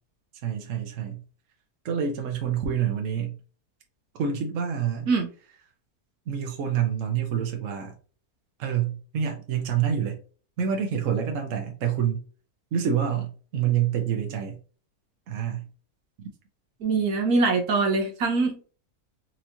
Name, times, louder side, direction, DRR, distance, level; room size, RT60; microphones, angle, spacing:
voice 1, 0.4-1.2 1.8-3.4 4.2-5.1 6.3-7.9 8.6-10.2 10.6-12.2 12.7-14.6 15.3-15.6, right 8 dB, 60° right, 1.1 m, -27 dB
voice 2, 16.8-18.6, right 3 dB, 75° right, 1.4 m, -23 dB
4.5 x 2.9 x 2.7 m
omnidirectional pair, 1.6 m